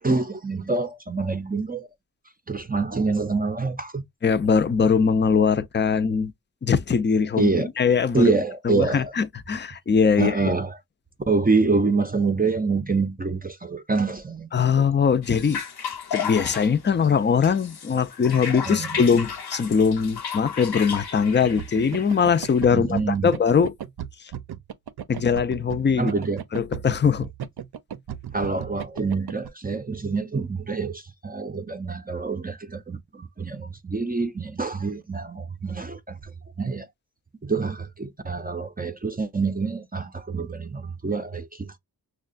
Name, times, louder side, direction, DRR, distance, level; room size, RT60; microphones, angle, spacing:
voice 1, 0.0-1.9 2.5-4.0 7.4-7.7 8.1-9.1 10.2-10.8 11.3-14.5 14.8-14.9 18.7-18.9 22.7-23.3 26.0-26.4 28.3-36.9 37.4-41.8, right 4 dB, 25° right, 0.5 m, -26 dB
voice 2, 4.2-6.3 6.6-8.3 8.6-10.4 14.5-15.6 16.1-23.7 24.2-24.3 25.1-26.1 26.5-27.3, left 6 dB, 30° left, 0.4 m, -21 dB
sound 1, 15.2-22.6, left 7 dB, 85° left, 1.0 m, -34 dB
sound 2, 21.4-29.5, right 9 dB, 80° right, 0.6 m, -35 dB
6.3 x 2.2 x 2.5 m
wide cardioid pair, 120°, 38 cm